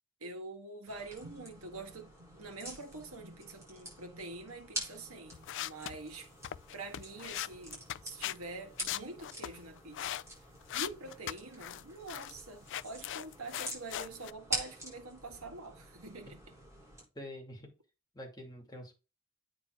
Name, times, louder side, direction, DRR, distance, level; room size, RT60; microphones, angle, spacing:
voice 1, 0.2-6.4 6.7-10.2 10.7-16.4, right 3 dB, 65° right, 1.9 m, -46 dB
sound 1, 0.9-17.0, right 1 dB, 15° right, 4.7 m, -46 dB
sound 2, 5.3-8.4 8.8-10.2 10.6-11.8 12.1-12.4 12.7-14.3, left 12 dB, 55° left, 0.3 m, -39 dB
voice 2, 17.1-17.7 18.1-19.0, left 1 dB, 20° left, 2.3 m, -46 dB
8.7 x 3.8 x 4.8 m
head